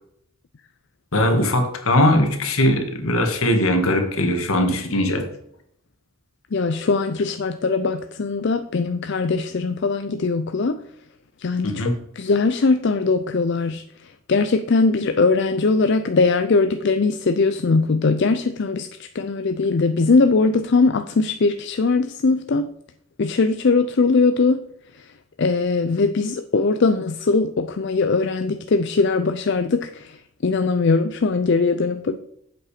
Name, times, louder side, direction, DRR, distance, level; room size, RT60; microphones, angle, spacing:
voice 1, 1.1-5.3 11.6-11.9, left 1 dB, 75° left, 5 dB, 1.8 m, -20 dB
voice 2, 6.5-10.8 11.4-18.9 19.1-22.7 23.2-24.6 24.9-25.1 25.4-32.2, left 4 dB, 55° left, 9 dB, 0.5 m, -20 dB
8.5 x 7.7 x 5.0 m, 0.72 s
head